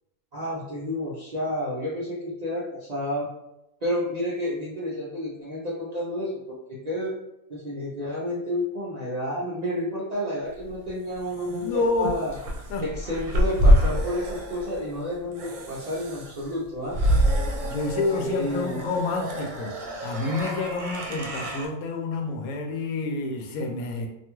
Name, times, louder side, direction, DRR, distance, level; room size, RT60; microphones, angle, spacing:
voice 1, 0.3-3.3 3.8-7.1 7.5-12.4 12.8-17.0 17.8-18.8, left 1 dB, 50° right, -7 dB, 0.5 m, -30 dB
sound 1, 10.6-21.7, equal, 75° right, 0.9 m, -26 dB
voice 2, 11.5-12.2 12.7-12.8 17.6-19.7 20.0-24.1, left 3 dB, 90° left, 3 dB, 1.1 m, -28 dB
2.6 x 2.3 x 2.9 m, 0.86 s
omnidirectional pair, 1.5 m